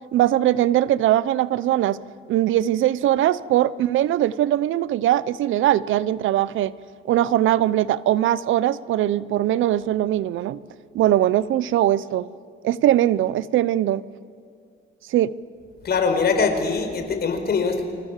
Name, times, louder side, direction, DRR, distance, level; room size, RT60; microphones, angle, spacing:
voice 1, 0.1-2.0 2.3-6.7 7.1-10.6 10.9-12.3 12.6-14.0 15.1-15.3, right 13 dB, 80° right, 18 dB, 0.8 m, -21 dB
voice 2, 15.8-17.8, left 5 dB, 55° left, 6 dB, 4.8 m, -22 dB
29.0 x 26.0 x 7.4 m, 2.3 s
cardioid pair, 90°, 20 cm